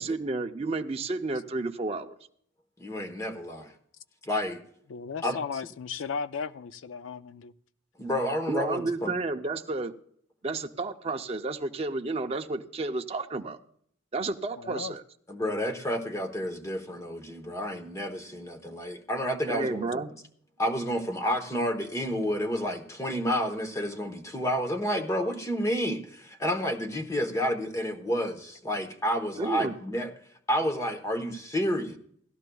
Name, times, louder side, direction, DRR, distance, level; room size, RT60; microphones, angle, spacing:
voice 1, 0.0-2.1 8.5-9.9 10.4-13.6 14.1-15.0 19.5-20.1 29.4-29.8, right 3 dB, 30° right, 0.5 m, -31 dB
voice 2, 2.8-3.7 4.2-4.6 5.2-5.4 8.0-9.1 15.3-20.0 20.6-30.1 30.5-32.0, equal, 15° left, 1.0 m, -30 dB
voice 3, 4.9-7.5 14.6-14.9, left 5 dB, 70° left, 0.4 m, -36 dB
16.5 x 13.5 x 2.3 m
head